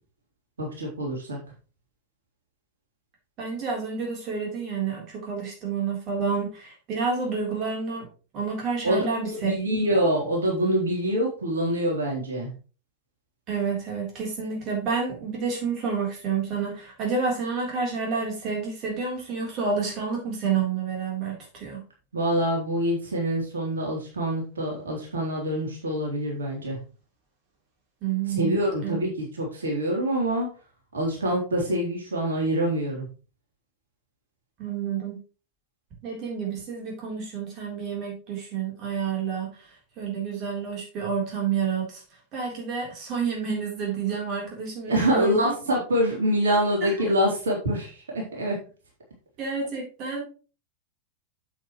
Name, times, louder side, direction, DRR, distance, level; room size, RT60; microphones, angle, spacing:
voice 1, 0.6-1.4 8.8-12.5 22.1-26.8 28.4-30.5 30.9-33.1 44.9-48.6, equal, 70° right, -2 dB, 3.7 m, -25 dB
voice 2, 3.4-8.1 8.3-9.8 13.5-21.8 28.0-29.0 34.6-35.2 36.0-39.5 40.0-42.0 42.3-45.5 46.8-47.1 49.4-50.2, right 5 dB, 40° right, -1 dB, 3.7 m, -29 dB
8.9 x 8.0 x 3.2 m, 0.36 s
figure-of-eight pair, 90°, 0 cm